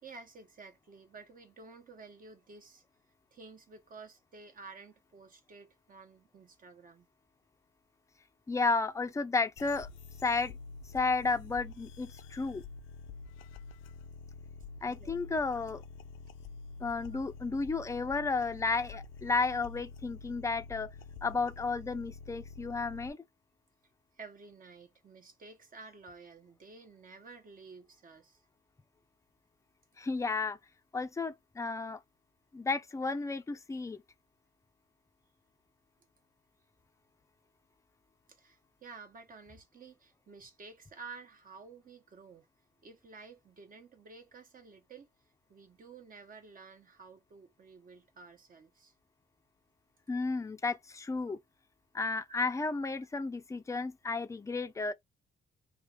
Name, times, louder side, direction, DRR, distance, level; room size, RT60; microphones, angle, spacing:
voice 1, 0.0-2.8 3.3-7.1 14.8-15.2 24.1-28.4 38.3-42.5 42.8-45.1 45.5-48.9 52.8-52.9, right 4 dB, 45° right, 1.0 m, -52 dB
voice 2, 8.5-9.9 10.2-10.6 10.9-12.6 14.8-15.8 16.8-20.9 21.2-23.2 30.0-30.6 30.9-32.0 32.5-34.0 50.1-51.4 51.9-54.9, left 4 dB, 15° left, 0.5 m, -32 dB
sound 1, 9.6-23.1, left 4 dB, 85° left, 0.6 m, -48 dB
3.2 x 2.4 x 3.5 m
cardioid pair, 90°, 20 cm